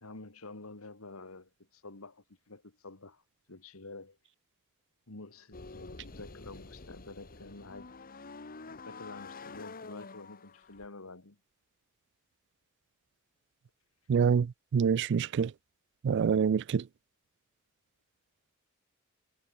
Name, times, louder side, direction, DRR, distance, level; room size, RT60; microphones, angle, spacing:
voice 1, 0.0-3.2 3.5-4.2 5.1-8.0 8.7-11.4, left 3 dB, 75° left, 2.2 m, -48 dB
sound 1, 5.5-10.9, left 3 dB, 45° left, 1.4 m, -48 dB
voice 2, 14.1-15.5 16.0-16.8, right 6 dB, 55° right, 0.4 m, -26 dB
head